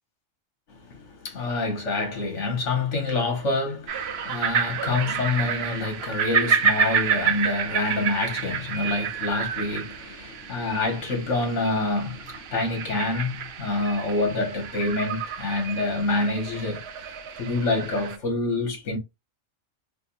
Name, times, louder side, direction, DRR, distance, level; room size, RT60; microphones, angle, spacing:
voice 1, 0.8-16.8 17.4-19.0, left 3 dB, 65° left, 1.6 m, -27 dB
sound 1, 3.9-18.2, right 7 dB, 60° right, 0.8 m, -29 dB
3.6 x 2.5 x 2.5 m
omnidirectional pair, 1.3 m